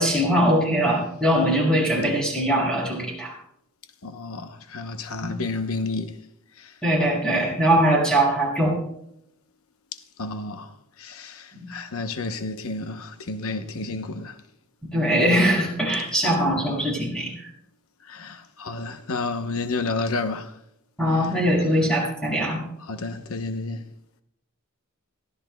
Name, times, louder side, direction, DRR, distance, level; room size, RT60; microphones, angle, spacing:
voice 1, 0.0-3.3 5.2-5.3 6.8-8.8 11.6-11.7 14.9-17.5 21.0-22.6, right 1 dB, 5° left, 5.9 m, -21 dB
voice 2, 4.0-6.1 6.6-6.7 10.2-14.4 18.0-20.5 21.1-21.3 22.9-23.9, left 3 dB, 90° left, 0.9 m, -31 dB
23.0 x 15.5 x 2.3 m
head